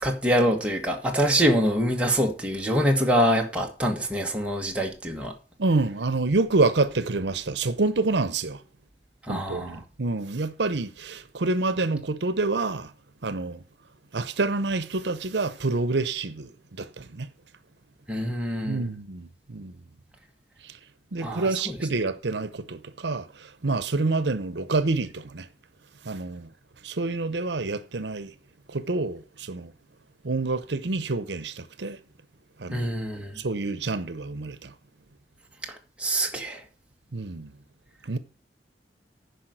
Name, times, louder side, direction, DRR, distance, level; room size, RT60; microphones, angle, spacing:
voice 1, 0.0-5.3 9.3-9.8 18.1-18.9 21.2-21.8 32.7-33.4 35.7-36.6, equal, 5° right, 1.5 m, -25 dB
voice 2, 5.6-8.6 9.3-12.9 13.2-13.6 14.1-17.3 18.6-19.8 20.6-20.7 21.1-25.5 26.0-26.5 26.8-28.3 28.7-29.7 30.2-32.0 32.6-32.9 33.4-34.7 37.1-37.5 38.1-38.2, right 3 dB, 80° right, 0.8 m, -27 dB
10.0 x 5.3 x 7.8 m
head